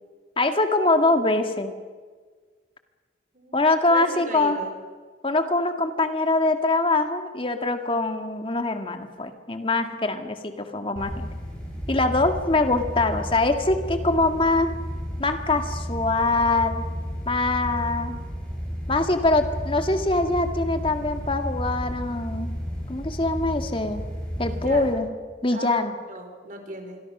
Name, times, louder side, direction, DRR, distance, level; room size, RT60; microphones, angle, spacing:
voice 1, 0.4-1.7 3.5-4.6 5.2-11.1 11.9-14.7 15.2-16.8 17.3-18.2 18.9-22.6 22.9-24.0 24.4-25.1 25.4-25.9, left 2 dB, 30° left, 6 dB, 1.9 m, -23 dB
voice 2, 3.3-4.8 24.5-25.0 25.5-27.0, right 2 dB, 45° right, 4 dB, 4.3 m, -37 dB
sound 1, 11.0-24.9, equal, 5° left, 7.3 m, -33 dB
26.5 x 22.5 x 6.1 m, 1.5 s
head